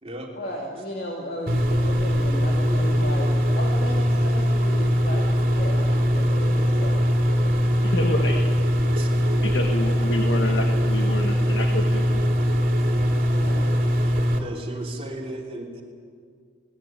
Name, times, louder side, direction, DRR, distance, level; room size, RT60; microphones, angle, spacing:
voice 1, 0.3-7.3 13.3-13.7, equal, 55° left, -2 dB, 2.7 m, -35 dB
sound 1, 1.5-14.4, equal, 55° right, 2.7 m, -21 dB
voice 2, 7.8-8.4 9.4-12.2, left 1 dB, 80° left, 3 dB, 1.6 m, -28 dB
voice 3, 14.4-15.8, right 1 dB, 35° right, -1 dB, 3.0 m, -35 dB
20.5 x 18.5 x 9.1 m, 2.1 s
head